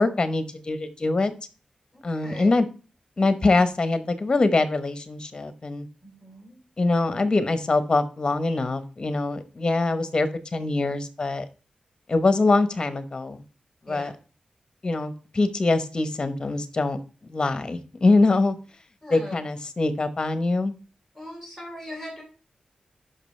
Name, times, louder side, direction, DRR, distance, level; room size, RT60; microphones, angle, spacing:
voice 1, 0.0-1.3 2.0-2.6 3.2-5.9 6.8-11.4 12.1-13.4 13.9-14.1 14.8-17.0 17.2-18.5 19.1-20.7, left 3 dB, 35° left, 11 dB, 0.9 m, -23 dB
voice 2, 1.9-2.5 6.0-6.6 13.9-14.1 19.0-19.3 21.1-22.2, left 1 dB, 5° right, -2 dB, 3.7 m, -40 dB
12.5 x 5.5 x 3.2 m, 0.37 s
wide cardioid pair, 115°, 2 cm